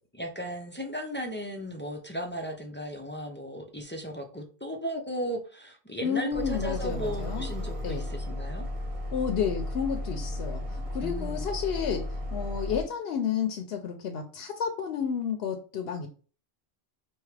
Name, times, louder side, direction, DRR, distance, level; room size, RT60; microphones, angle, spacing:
voice 1, 0.2-8.6 11.0-11.5, equal, 15° left, 2 dB, 0.4 m, -36 dB
voice 2, 6.0-7.5 7.8-8.1 9.1-16.1, left 7 dB, 75° left, 5 dB, 0.8 m, -31 dB
sound 1, 6.3-12.8, left 1 dB, 35° right, 1.0 m, -34 dB
4.7 x 2.8 x 3.3 m, 0.39 s
omnidirectional pair, 1.1 m